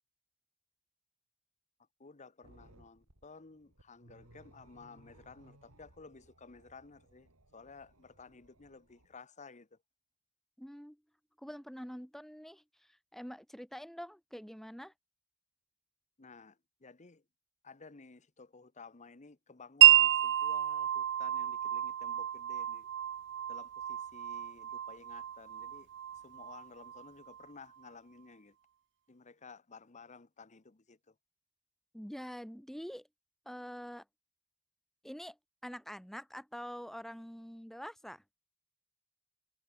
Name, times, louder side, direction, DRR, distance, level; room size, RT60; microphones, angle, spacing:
voice 1, 2.0-9.8 16.2-17.2 17.6-22.9 23.5-25.9 26.1-28.6 29.1-31.1, left 4 dB, 35° left, 1.0 m, -54 dB
sound 1, 2.4-9.2, right 1 dB, 85° right, 4.3 m, -63 dB
voice 2, 10.6-11.0 11.4-14.9 31.9-33.1 33.4-34.0 35.0-35.4 35.6-38.2, equal, ahead, 1.5 m, -45 dB
Wind chime, 19.8-27.4, right 13 dB, 55° right, 0.4 m, -29 dB
head